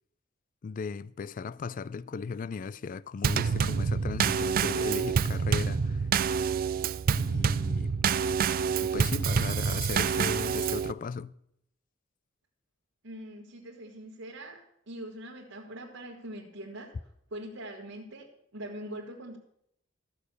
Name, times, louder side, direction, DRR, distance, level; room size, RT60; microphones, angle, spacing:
voice 1, 0.6-6.1 7.2-8.0 8.8-11.3, left 5 dB, 40° left, 0.3 m, -37 dB
Drum kit / Snare drum / Bass drum, 3.2-10.9, right 6 dB, 45° right, 0.3 m, -27 dB
voice 2, 13.0-17.0 17.3-19.4, right 1 dB, 65° right, 1.5 m, -43 dB
14.0 x 6.5 x 6.6 m
head